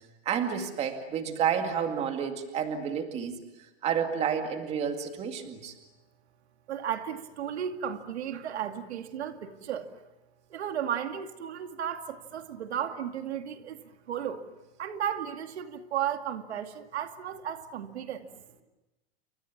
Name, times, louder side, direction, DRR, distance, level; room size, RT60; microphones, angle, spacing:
voice 1, 0.3-3.4 3.8-5.7, right 7 dB, 20° right, 5 dB, 2.2 m, -30 dB
voice 2, 6.7-9.9 10.5-14.4 14.8-18.3, right 9 dB, 85° right, 7 dB, 2.4 m, -34 dB
29.0 x 26.0 x 7.3 m, 1.0 s
supercardioid pair, 165°, 32 cm